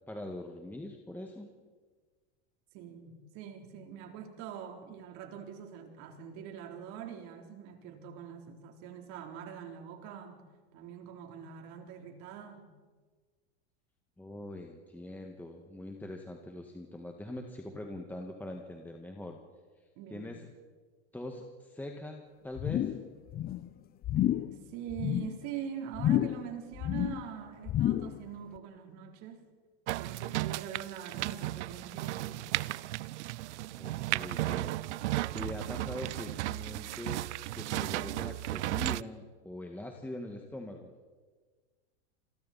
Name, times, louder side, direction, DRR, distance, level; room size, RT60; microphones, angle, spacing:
voice 1, 0.1-1.5 14.2-19.4 20.1-20.5 21.1-22.9 33.8-34.8 35.3-37.2 37.5-40.9, left 1 dB, 5° left, 2 dB, 1.9 m, -42 dB
voice 2, 2.7-10.4 10.7-12.7 20.0-20.4 24.2-29.5 29.9-32.4, right 8 dB, 55° right, 3 dB, 3.9 m, -43 dB
sound 1, 22.6-23.1 23.3-23.7 24.0-24.5 24.9-25.4 25.9-26.5 26.8-27.3 27.7-28.2 28.6-28.7, left 12 dB, 30° left, 0.6 m, -30 dB
sound 2, 29.9-39.0, right 17 dB, 85° right, 0.6 m, -35 dB
28.5 x 23.0 x 4.3 m, 1.4 s
supercardioid pair, 120°, 34 cm